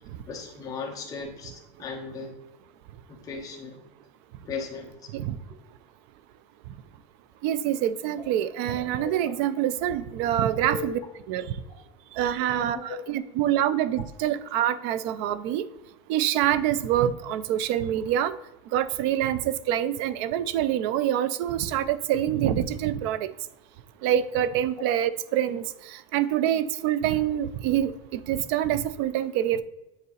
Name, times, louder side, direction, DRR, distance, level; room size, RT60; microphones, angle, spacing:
voice 1, 0.3-2.3 3.1-3.8 4.5-5.1 9.0-9.3 10.5-10.8 12.5-13.0, left 4 dB, 20° left, 0 dB, 1.2 m, -37 dB
voice 2, 7.4-11.0 11.3-11.5 12.1-15.7 16.1-18.4 18.7-23.3 24.0-29.6, right 11 dB, 55° right, 15 dB, 0.4 m, -26 dB
9.3 x 3.9 x 3.1 m, 0.97 s
cardioid pair, 170°, 16 cm